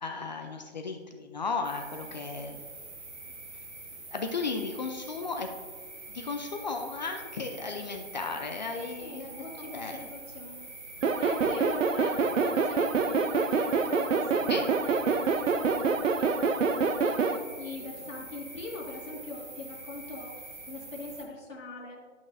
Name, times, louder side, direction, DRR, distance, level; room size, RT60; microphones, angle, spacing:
voice 1, 0.0-2.6 4.1-5.5 6.1-10.0 11.6-11.7 14.5-14.7, left 4 dB, 35° left, 4 dB, 0.5 m, -35 dB
sound 1, 1.6-21.2, right 2 dB, 25° right, 2.1 m, -45 dB
voice 2, 2.0-2.5 8.7-20.3 20.7-22.0, left 3 dB, 80° left, -2 dB, 2.3 m, -42 dB
sound 2, 11.0-17.4, right 5 dB, 80° right, 0.7 m, -26 dB
12.0 x 5.9 x 2.7 m, 1.5 s
hypercardioid pair, 150°, 38 cm